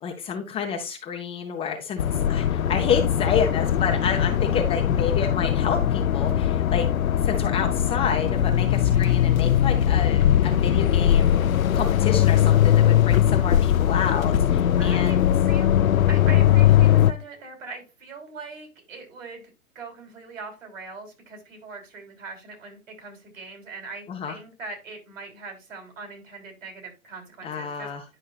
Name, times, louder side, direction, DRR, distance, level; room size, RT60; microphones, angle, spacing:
voice 1, 0.0-6.9 7.2-15.3 24.1-24.3 27.4-28.0, left 6 dB, 15° left, 3 dB, 0.6 m, -29 dB
sound 1, 2.0-17.1, left 10 dB, 75° left, 0.6 m, -20 dB
voice 2, 8.8-9.3 14.8-27.9, right 3 dB, 70° right, 3 dB, 3.6 m, -41 dB
10.0 x 5.4 x 2.4 m, 0.28 s
figure-of-eight pair, 115°, 41 cm